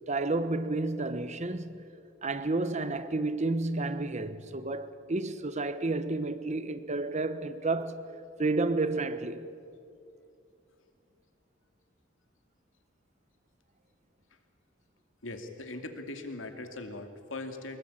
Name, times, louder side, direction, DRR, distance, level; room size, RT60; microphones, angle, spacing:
voice 1, 0.1-1.7 2.2-8.1 8.4-9.5, right 2 dB, 35° right, 1.1 m, -31 dB
voice 2, 15.2-17.8, left 2 dB, 85° left, 2.7 m, -40 dB
24.5 x 22.0 x 8.8 m
head